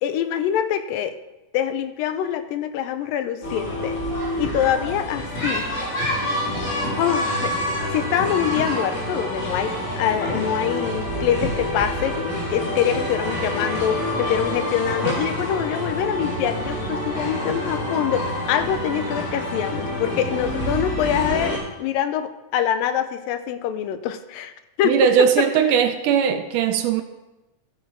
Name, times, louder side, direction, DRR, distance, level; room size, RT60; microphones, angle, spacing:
voice 1, 0.0-1.2 1.5-4.0 4.4-5.7 7.0-7.5 7.9-24.5 24.8-25.1, left 9 dB, 85° left, 10 dB, 2.3 m, -25 dB
sound 1, 3.4-21.6, left 1 dB, 50° left, 4.2 m, -27 dB
voice 2, 24.8-27.0, right 7 dB, 80° right, 8 dB, 2.0 m, -19 dB
14.0 x 6.4 x 4.3 m, 1.0 s
omnidirectional pair, 4.0 m